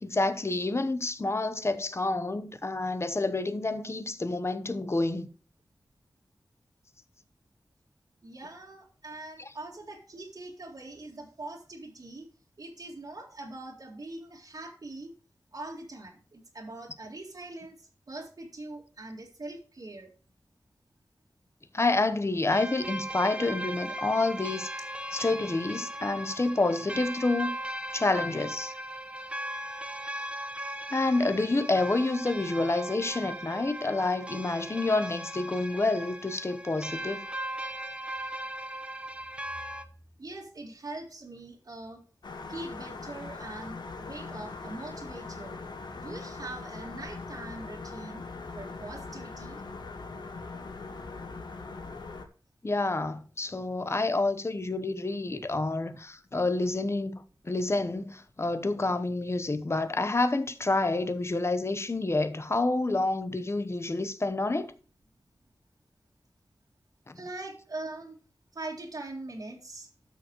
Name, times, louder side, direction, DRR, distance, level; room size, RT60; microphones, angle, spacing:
voice 1, 0.0-5.3 9.4-9.5 21.7-24.7 25.1-27.5 27.9-28.7 30.9-37.3 52.6-64.7 67.1-67.2, left 2 dB, 35° left, 0.9 m, -28 dB
voice 2, 8.2-12.3 12.6-15.1 15.5-20.1 40.2-42.0 42.5-45.6 46.0-48.2 48.5-49.6 67.1-68.2 68.5-69.9, right 2 dB, 60° right, 2.1 m, -42 dB
sound 1, 22.5-39.8, right 1 dB, 15° right, 1.0 m, -38 dB
sound 2, 42.2-52.3, left 3 dB, 85° left, 1.2 m, -41 dB
12.5 x 6.5 x 3.0 m
wide cardioid pair, 75°, 7 cm